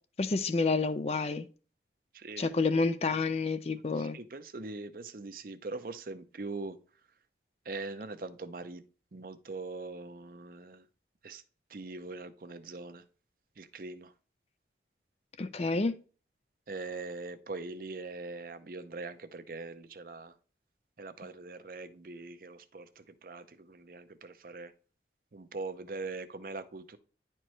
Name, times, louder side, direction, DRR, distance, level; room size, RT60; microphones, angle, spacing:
voice 1, 0.2-1.5 2.4-4.2 15.4-16.0, left 3 dB, 35° left, 0.4 m, -29 dB
voice 2, 2.1-2.5 4.1-6.8 7.7-8.8 9.1-10.8 11.2-11.4 11.7-13.0 13.6-14.1 16.7-20.3 21.0-24.7 25.3-27.0, right 3 dB, 50° right, 0.6 m, -42 dB
10.0 x 4.4 x 3.1 m
head